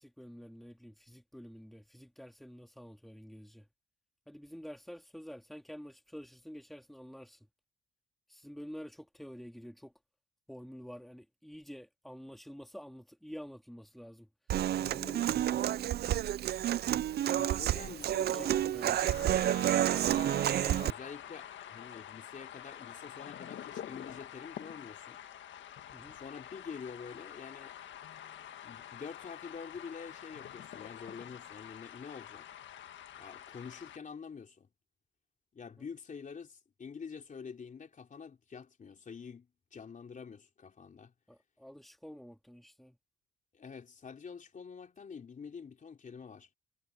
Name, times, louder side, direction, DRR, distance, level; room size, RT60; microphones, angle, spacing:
voice 1, 0.0-3.7 4.3-7.5 8.3-9.9 10.5-14.3 14.7-15.9 18.2-19.0 25.9-26.2 35.8-35.9 41.3-43.0, equal, ahead, 3.3 m, -49 dB
Human voice / Acoustic guitar, 14.5-20.9, right 12 dB, 55° right, 0.4 m, -30 dB
voice 2, 17.3-18.7 19.8-25.2 26.1-27.7 28.6-32.5 33.2-34.7 35.5-41.1 43.5-46.5, left 6 dB, 40° left, 3.6 m, -47 dB
sound 1, 18.9-34.0, left 10 dB, 70° left, 1.7 m, -47 dB
cardioid pair, 90°, 20 cm